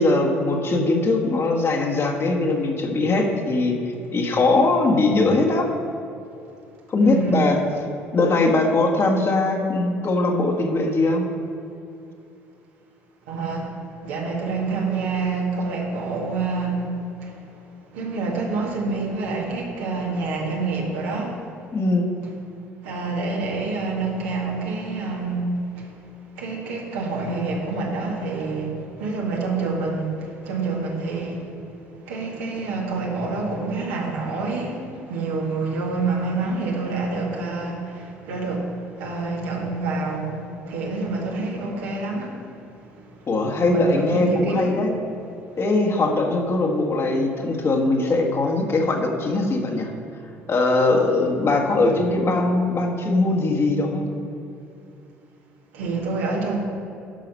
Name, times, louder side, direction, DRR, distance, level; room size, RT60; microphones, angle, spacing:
voice 1, 0.0-5.7 6.9-7.6 8.1-11.3 21.7-22.1 43.3-45.0 45.6-49.9 50.5-54.1, left 2 dB, 40° left, 1 dB, 1.7 m, -21 dB
voice 2, 7.0-7.6 13.3-13.7 14.0-17.4 17.9-21.4 22.8-25.9 26.4-31.5 32.0-42.4 43.7-44.7 55.7-56.6, right 3 dB, 75° right, -3 dB, 2.1 m, -27 dB
11.5 x 5.7 x 5.4 m, 2.7 s
figure-of-eight pair, 55°, 7 cm